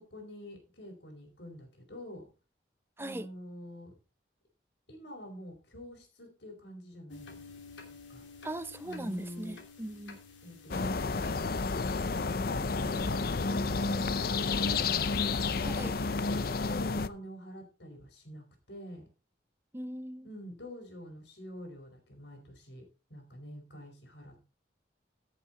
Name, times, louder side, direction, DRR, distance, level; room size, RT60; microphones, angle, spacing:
voice 1, 0.1-2.3 3.0-3.9 4.9-7.6 7.9-8.2 8.8-9.5 10.4-11.0 12.1-15.0 15.5-19.1 20.2-22.8 23.1-24.4, left 1 dB, 70° left, 4.6 m, -47 dB
voice 2, 3.0-3.3 8.4-10.2 15.6-15.9 19.7-20.3, right 1 dB, 10° right, 0.6 m, -39 dB
sound 1, 7.1-12.2, left 4 dB, 85° left, 3.1 m, -51 dB
sound 2, 10.7-17.1, left 4 dB, 50° left, 0.6 m, -30 dB
15.0 x 7.7 x 3.9 m
head